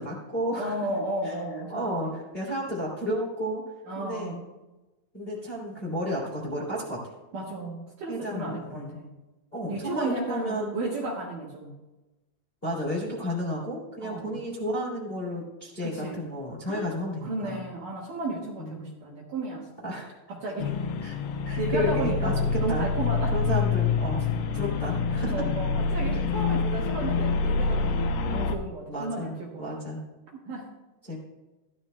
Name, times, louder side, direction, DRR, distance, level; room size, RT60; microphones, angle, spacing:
voice 1, 0.0-0.8 1.2-1.4 1.7-3.6 3.9-4.4 5.1-7.0 8.1-9.0 9.5-10.7 12.6-17.7 18.6-18.9 19.8-20.1 21.0-21.2 21.4-22.9 23.3-24.3 24.5-25.3 26.1-26.2 28.9-29.3 29.6-30.0 31.0-31.2, equal, 15° left, -4 dB, 2.3 m, -32 dB
voice 2, 0.6-2.1 3.9-4.5 7.3-9.1 9.7-11.8 14.0-14.4 15.8-16.2 16.6-16.9 17.2-19.9 20.3-20.7 21.6-23.4 25.3-29.7 30.5-30.7, right 2 dB, 60° right, -5 dB, 2.6 m, -34 dB
Exosphere Elevator, 20.6-28.6, left 4 dB, 75° left, 2.4 m, -26 dB
16.5 x 13.0 x 2.2 m, 1.1 s
omnidirectional pair, 5.3 m